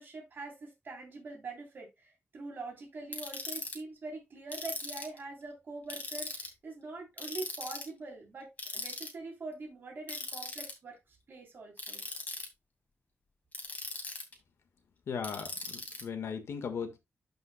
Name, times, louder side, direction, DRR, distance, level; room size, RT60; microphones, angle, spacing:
voice 1, 0.0-12.0, right 3 dB, 50° right, 3.3 m, -44 dB
Ratchet pawl, 3.1-3.7 4.5-5.2 5.9-6.5 7.2-7.9 8.6-9.1 10.1-10.7 11.8-12.5 13.5-14.3 15.2-16.0, left 3 dB, 35° left, 2.3 m, -39 dB
voice 2, 15.1-17.0, left 6 dB, 75° left, 1.5 m, -37 dB
12.0 x 5.6 x 2.2 m
wide cardioid pair, 165°, 5 cm